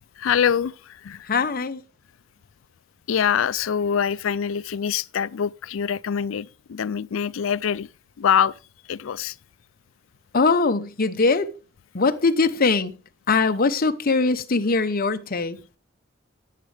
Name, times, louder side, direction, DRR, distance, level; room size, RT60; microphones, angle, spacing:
voice 1, 0.2-1.2 3.1-7.9 8.2-8.5 8.9-9.3, left 8 dB, 80° left, 0.4 m, -24 dB
voice 2, 1.2-1.8 10.3-11.5 11.9-12.9 13.3-15.6, left 4 dB, 45° left, 0.8 m, -21 dB
18.0 x 7.5 x 3.3 m
head